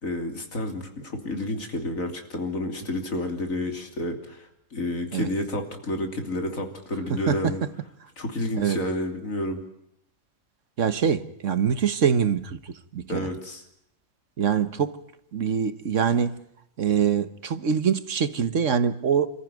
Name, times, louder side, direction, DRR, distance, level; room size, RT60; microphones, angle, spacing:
voice 1, 0.0-7.6 8.2-9.6 13.1-13.6, left 1 dB, 70° left, 3.4 m, -30 dB
voice 2, 7.1-7.6 8.6-8.8 10.8-13.3 14.4-15.0 15.3-16.4 16.8-19.3, right 7 dB, 60° right, 1.5 m, -24 dB
28.0 x 14.5 x 9.2 m
omnidirectional pair, 1.5 m